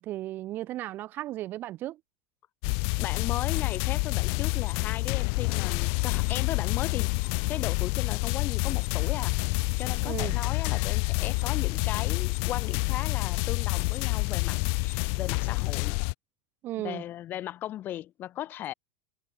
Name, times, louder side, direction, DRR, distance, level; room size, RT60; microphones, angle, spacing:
voice 1, 0.0-2.0 10.0-10.3 16.6-17.0, right 15 dB, 40° right, 0.7 m, -35 dB
sound 1, 2.6-16.1, left 40 dB or more, 55° left, 1.0 m, -28 dB
voice 2, 3.0-7.1 7.5-16.0 16.8-18.7, left 13 dB, 40° left, 3.4 m, -37 dB
hypercardioid pair, 90°, 5 cm